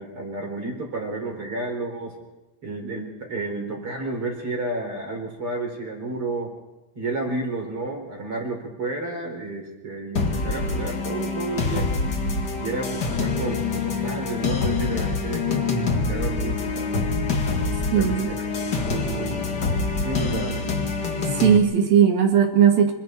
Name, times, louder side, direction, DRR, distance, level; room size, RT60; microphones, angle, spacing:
voice 1, 0.0-2.2 2.6-6.5 6.9-11.9 12.5-17.1 17.9-19.4 20.0-20.6, right 2 dB, 30° right, 1 dB, 4.5 m, -31 dB
sound 1, 10.1-21.6, left 4 dB, 50° left, 1.2 m, -25 dB
voice 2, 17.9-18.3 21.3-22.9, right 8 dB, 60° right, 4 dB, 3.2 m, -18 dB
26.0 x 25.5 x 4.6 m, 1.0 s
omnidirectional pair, 5.2 m